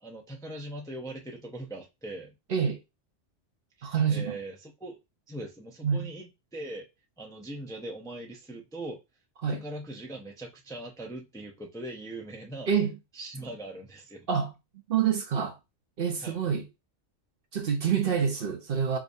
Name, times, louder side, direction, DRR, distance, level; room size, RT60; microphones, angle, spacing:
voice 1, 0.0-2.3 3.8-5.0 5.3-6.9 7.2-9.0 9.5-12.7 13.1-14.3 16.2-16.5, right 1 dB, 5° left, 0.5 m, -41 dB
voice 2, 3.8-4.4 5.8-6.1 9.4-9.6 12.7-12.9 14.3-14.5 14.9-15.6 16.0-16.6 17.5-19.0, right 7 dB, 55° right, 0.8 m, -27 dB
4.9 x 2.6 x 2.6 m
omnidirectional pair, 1.3 m